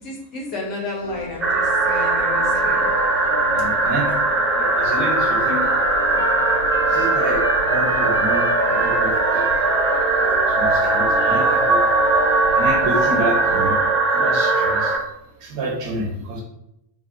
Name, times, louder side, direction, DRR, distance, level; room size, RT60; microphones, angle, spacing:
voice 1, 0.0-2.9, left 2 dB, 35° left, -2 dB, 1.3 m, -32 dB
sound 1, 1.0-13.9, left 2 dB, 75° left, 0.3 m, -33 dB
sound 2, 1.4-15.0, right 3 dB, 20° right, 0.6 m, -19 dB
voice 2, 3.5-4.1 4.6-5.7 6.1-6.2 6.9-11.8 12.5-13.7 14.1-15.0 15.4-16.4, right 1 dB, 45° right, -1 dB, 1.0 m, -29 dB
Trumpet, 3.8-12.1, equal, 75° right, 0.8 m, -33 dB
4.6 x 2.3 x 2.8 m, 0.83 s
figure-of-eight pair, 90°, 0 cm